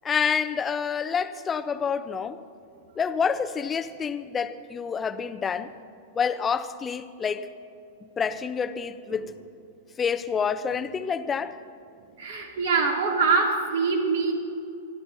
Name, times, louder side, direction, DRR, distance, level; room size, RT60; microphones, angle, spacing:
voice 1, 0.0-2.4 3.0-5.8 6.1-7.5 8.0-9.3 10.0-11.6, left 6 dB, 20° left, 12 dB, 0.6 m, -28 dB
voice 2, 12.2-14.3, right 4 dB, 75° right, 0 dB, 2.7 m, -24 dB
26.0 x 12.0 x 2.7 m, 2.5 s
hypercardioid pair, 110°, 0 cm